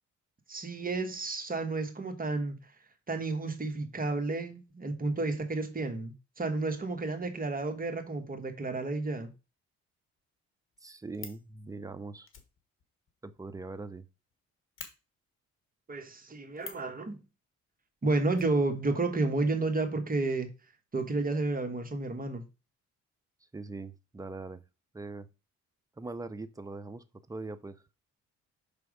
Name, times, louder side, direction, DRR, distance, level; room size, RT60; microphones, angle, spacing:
voice 1, 0.5-2.6 3.1-9.3 15.9-17.2 18.0-20.5 20.9-22.4, right 3 dB, 30° right, 1.3 m, -31 dB
Fire, 10.3-10.4 10.7-11.5 12.2-14.0 14.3-14.4 14.8-14.9 16.6-16.9 18.3-19.2 19.5-19.6 19.8-19.9, left 6 dB, 45° left, 1.3 m, -47 dB
voice 2, 10.8-12.3 13.2-14.0 23.5-24.6 24.9-25.3 26.0-27.8, right 3 dB, 10° right, 0.5 m, -41 dB
6.2 x 3.4 x 4.8 m
cardioid pair, 90°, 30 cm